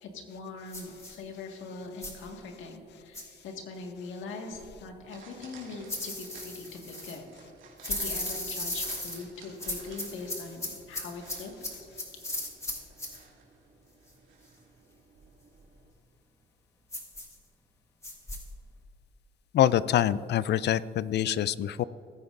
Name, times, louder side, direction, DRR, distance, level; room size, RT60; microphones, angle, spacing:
voice 1, 0.0-7.3 7.9-11.9, left 3 dB, 80° left, 2 dB, 1.8 m, -42 dB
sound 1, 0.7-1.2 2.0-2.3 3.1-3.4 5.9-7.2 7.8-9.2 9.6-13.2 16.9-17.4 18.0-18.4, left 1 dB, 15° left, 1.7 m, -36 dB
sound 2, 4.5-15.9, right 4 dB, 80° right, 2.6 m, -54 dB
voice 2, 19.5-21.8, left 11 dB, 60° left, 18 dB, 0.4 m, -25 dB
18.5 x 9.6 x 2.6 m, 2.6 s
cardioid pair, 90°, 20 cm